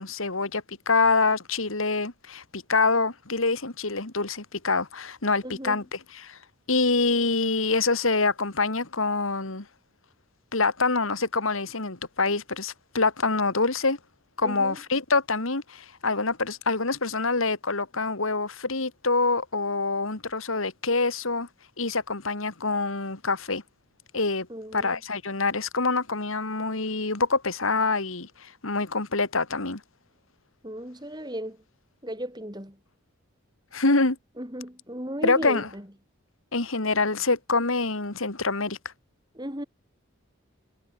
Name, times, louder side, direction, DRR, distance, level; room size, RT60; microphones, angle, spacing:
voice 1, 0.0-6.4 6.7-9.6 10.5-14.0 14.4-21.5 21.8-23.6 24.1-24.5 24.7-29.8 33.7-34.2 35.2-35.7 36.5-38.8, left 3 dB, 75° left, 2.6 m, -26 dB
voice 2, 5.4-5.8 14.4-14.8 24.5-24.9 30.6-31.6 32.0-32.8 34.4-35.9 39.3-39.6, equal, 20° right, 5.7 m, -35 dB
head